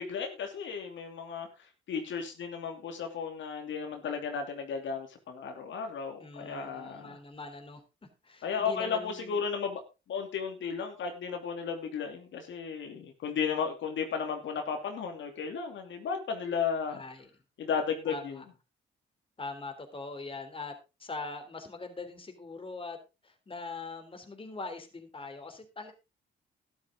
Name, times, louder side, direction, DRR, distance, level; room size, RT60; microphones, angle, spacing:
voice 1, 0.0-1.5 1.9-7.2 8.4-9.8 10.1-17.0 17.6-18.4, left 6 dB, 70° left, 4 dB, 2.8 m, -34 dB
voice 2, 6.2-7.8 8.2-9.4 16.9-17.3 18.1-18.4 19.4-20.7 21.0-23.0 23.2-25.9, left 3 dB, 25° left, 6 dB, 3.4 m, -42 dB
12.5 x 11.0 x 3.7 m, 0.28 s
cardioid pair, 90°, 20 cm